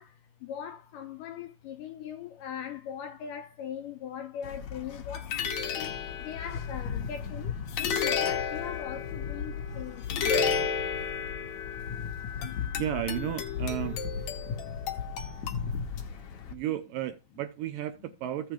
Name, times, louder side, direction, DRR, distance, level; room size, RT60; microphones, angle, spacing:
voice 1, 0.0-6.0 6.2-10.3, left 9 dB, 80° left, 2.0 m, -40 dB
sound 1, 4.4-16.5, left 6 dB, 60° left, 2.2 m, -32 dB
voice 2, 12.8-14.0 16.5-18.5, right 12 dB, 80° right, 2.0 m, -33 dB
15.0 x 6.8 x 3.1 m
omnidirectional pair, 4.4 m